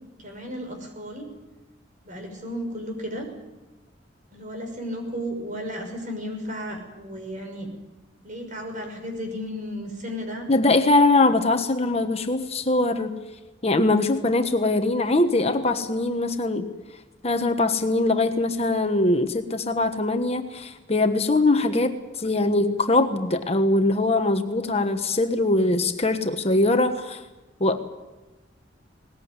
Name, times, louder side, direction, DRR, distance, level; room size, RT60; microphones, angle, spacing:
voice 1, 0.2-1.3 2.0-3.3 4.3-7.7 8.2-10.5, equal, 45° right, 3 dB, 6.1 m, -34 dB
voice 2, 10.5-13.2 13.6-16.7 17.2-27.2 27.6-27.8, left 2 dB, 35° left, 7 dB, 1.3 m, -22 dB
20.5 x 19.5 x 9.7 m, 1.1 s
head